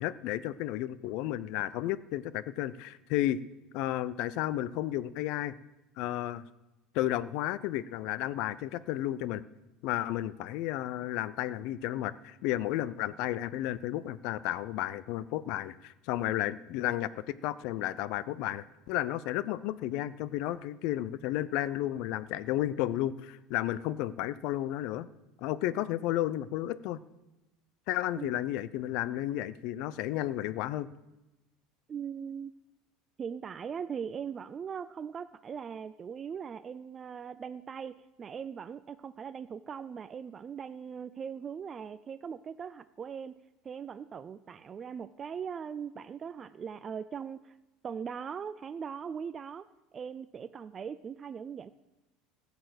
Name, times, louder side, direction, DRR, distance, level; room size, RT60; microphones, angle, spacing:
voice 1, 0.0-3.4 3.7-5.5 6.0-6.4 6.9-9.4 9.8-25.1 25.4-27.0 27.9-30.9, left 14 dB, 65° left, 18 dB, 0.5 m, -32 dB
voice 2, 31.9-32.5 33.2-43.3 43.6-47.5 47.8-49.6 49.9-51.7, right 7 dB, 25° right, 14 dB, 0.3 m, -40 dB
14.5 x 7.0 x 7.9 m, 1.0 s
supercardioid pair, 140°, 0 cm